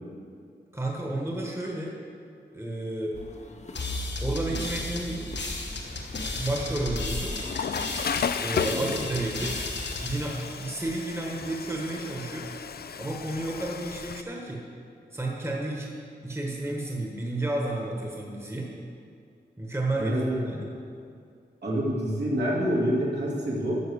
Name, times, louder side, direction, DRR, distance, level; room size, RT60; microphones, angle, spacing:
voice 1, 0.7-1.9 2.5-3.2 4.2-5.3 6.4-7.4 8.4-9.6 10.0-12.5 13.0-14.6 15.1-15.9 16.2-18.7 19.6-20.1 20.5-20.7, right 2 dB, 15° right, -2 dB, 1.4 m, -31 dB
sound 1, 3.1-8.9, left 2 dB, 40° left, 0.8 m, -41 dB
sound 2, 3.7-11.2, left 2 dB, 85° left, 1.3 m, -35 dB
Water / Toilet flush, 5.8-14.2, left 7 dB, 60° left, 0.4 m, -35 dB
voice 2, 20.0-20.4 21.6-23.8, equal, 70° right, -5 dB, 2.5 m, -27 dB
11.0 x 6.4 x 6.9 m, 2.4 s
wide cardioid pair, 120°, 18 cm